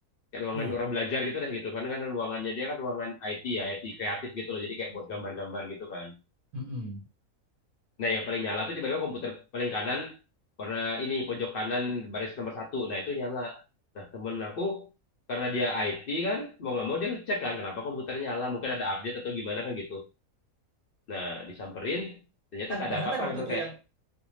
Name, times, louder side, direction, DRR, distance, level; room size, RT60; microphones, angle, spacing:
voice 1, 0.3-6.1 8.0-10.2 10.6-13.6 13.9-14.9 15.3-20.1 21.1-22.2 22.5-23.7, left 3 dB, 60° left, 0.6 m, -32 dB
voice 2, 6.5-7.1 22.7-24.0, right 2 dB, 80° right, 1.3 m, -35 dB
2.5 x 2.1 x 3.1 m
omnidirectional pair, 1.5 m